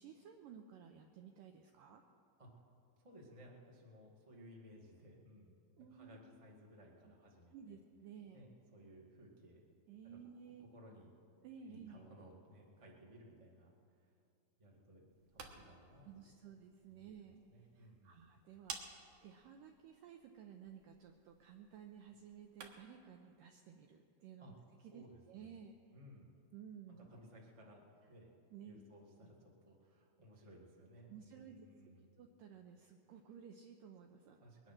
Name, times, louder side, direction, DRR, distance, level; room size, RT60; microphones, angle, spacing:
voice 1, 0.0-2.0 5.8-6.2 7.5-8.5 9.9-10.7 11.4-12.1 16.1-24.5 24.8-25.8 26.5-27.2 28.5-28.8 31.1-31.9 32.2-34.5, right 7 dB, 85° right, 4 dB, 1.9 m, -55 dB
voice 2, 3.0-7.8 8.3-9.6 10.4-11.2 11.6-14.1 14.6-15.0 15.3-16.1 16.9-18.2 24.4-24.5 24.9-25.6 25.9-26.3 26.9-28.3 28.6-32.1 34.4-34.7, equal, 35° right, -2 dB, 0.5 m, -60 dB
sound 1, 15.1-23.0, right 6 dB, 65° right, 2.2 m, -56 dB
21.5 x 9.8 x 6.0 m, 2.6 s
omnidirectional pair, 4.6 m